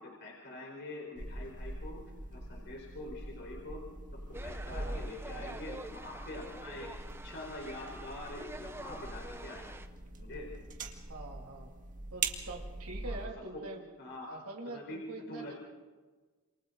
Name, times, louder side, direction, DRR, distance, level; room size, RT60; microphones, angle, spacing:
voice 1, 0.0-2.0 2.3-3.8 4.4-6.9 7.2-9.6 10.2-10.5 13.0-13.6 14.0-14.3 14.7-15.0 15.3-15.6, left 2 dB, 50° left, -1 dB, 4.5 m, -45 dB
sound 1, 1.2-13.3, right 3 dB, 35° right, 2.1 m, -43 dB
sound 2, 4.3-9.9, right 1 dB, 10° right, 1.0 m, -47 dB
voice 2, 4.7-5.0 5.3-5.6 11.1-11.7 12.1-13.8 14.3-15.6, right 2 dB, 85° right, 0 dB, 2.8 m, -44 dB
28.5 x 28.0 x 4.0 m, 1.4 s
head